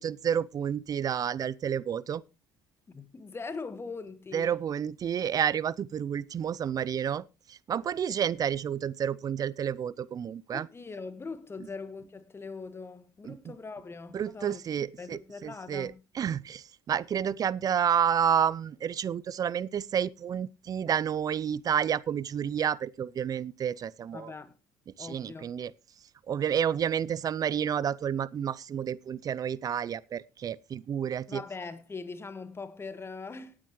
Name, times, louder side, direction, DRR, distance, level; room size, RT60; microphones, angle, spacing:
voice 1, 0.0-2.2 4.3-7.2 7.5-10.7 13.2-13.4 14.1-24.3 25.0-25.7 26.3-31.4, right 8 dB, 45° right, 0.5 m, -30 dB
voice 2, 2.9-4.6 10.5-16.0 24.1-24.6 25.0-25.5 31.3-33.6, left 4 dB, 25° left, 1.6 m, -41 dB
18.5 x 8.8 x 3.1 m
hypercardioid pair, 55°, 9 cm